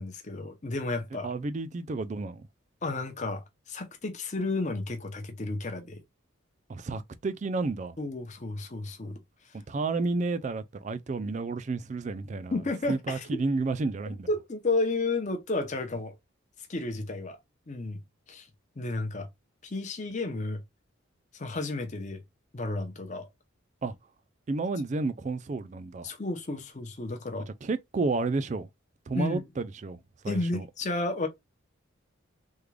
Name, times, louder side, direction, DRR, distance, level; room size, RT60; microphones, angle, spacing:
voice 1, 0.0-1.3 2.8-6.0 8.0-9.2 9.5-9.6 12.5-13.4 14.3-16.1 16.7-17.4 17.7-18.0 18.3-18.5 18.8-19.3 19.6-20.6 21.3-22.2 22.5-23.3 26.0-27.5 29.1-29.4 30.3-31.3, left 2 dB, 35° left, 0.7 m, -32 dB
voice 2, 1.2-2.5 6.7-8.0 9.5-12.5 12.9-14.3 23.8-24.0 24.5-26.1 27.6-28.7 29.1-30.0 30.2-30.7, right 3 dB, 35° right, 0.3 m, -31 dB
3.6 x 2.2 x 3.2 m
head